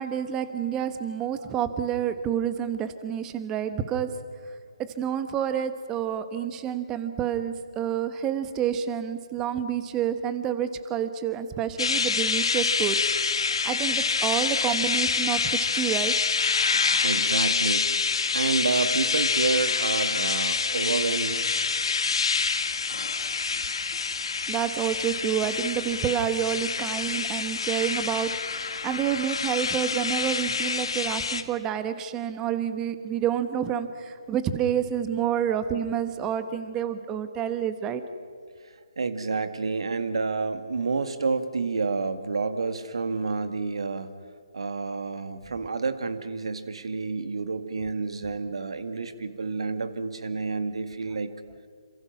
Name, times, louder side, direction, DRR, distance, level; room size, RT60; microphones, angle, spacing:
voice 1, 0.0-4.1 4.8-13.0 13.6-16.1 24.5-38.0, right 9 dB, 15° right, 10 dB, 1.4 m, -28 dB
sound 1, 11.8-31.4, left 5 dB, 60° left, 2.1 m, -26 dB
voice 2, 17.0-18.0 18.3-21.5 39.0-44.1 44.5-51.3, right 4 dB, 65° right, 9 dB, 2.1 m, -29 dB
28.5 x 27.0 x 6.0 m, 2.2 s
figure-of-eight pair, 145°, 3 cm